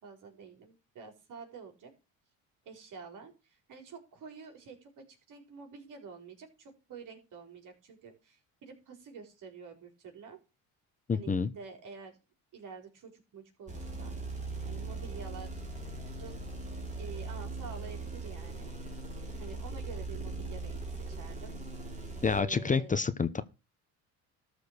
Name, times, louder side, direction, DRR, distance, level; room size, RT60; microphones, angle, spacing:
voice 1, 0.0-1.9 2.6-10.4 11.1-12.2 12.5-14.1 14.6-15.6 16.1-16.4 17.0-18.7 19.1-21.6 22.3-23.0, right 5 dB, 60° right, 4.4 m, -48 dB
voice 2, 11.1-11.5 22.2-23.4, left 5 dB, 20° left, 0.9 m, -28 dB
sound 1, 13.7-22.4, right 3 dB, 20° right, 3.6 m, -40 dB
13.5 x 5.1 x 6.5 m
cardioid pair, 100°, 35 cm